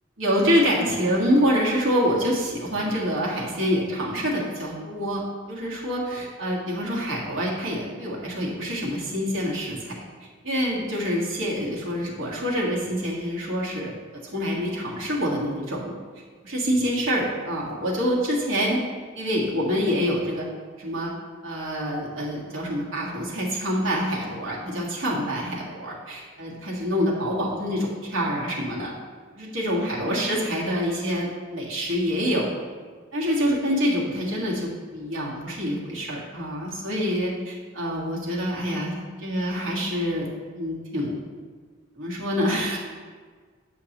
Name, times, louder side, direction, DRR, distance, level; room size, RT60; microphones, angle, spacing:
voice 1, 0.2-5.2 5.5-10.0 10.4-13.9 14.2-15.9 16.4-18.8 19.1-20.5 20.8-21.1 21.4-28.9 29.4-32.5 33.1-40.3 40.5-41.2 42.0-42.8, equal, 90° right, -4 dB, 1.7 m, -26 dB
8.6 x 5.9 x 3.0 m, 1.5 s
head